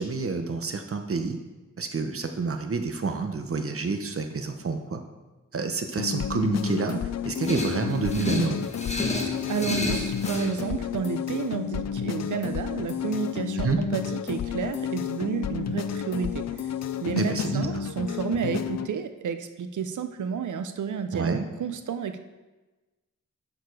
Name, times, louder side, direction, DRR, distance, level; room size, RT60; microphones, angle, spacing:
voice 1, 0.0-1.4 1.8-5.0 5.5-8.7 13.5-13.8 17.2-17.7 21.1-21.5, right 4 dB, 45° right, 6 dB, 1.0 m, -28 dB
sound 1, 6.0-18.9, left 8 dB, 60° left, 0.5 m, -31 dB
sound 2, 7.4-10.5, left 2 dB, 20° left, 1.2 m, -31 dB
voice 2, 9.5-16.5 17.0-22.2, right 7 dB, 75° right, 9 dB, 0.6 m, -31 dB
6.8 x 6.7 x 4.7 m, 1.2 s
cardioid pair, 60°, 30 cm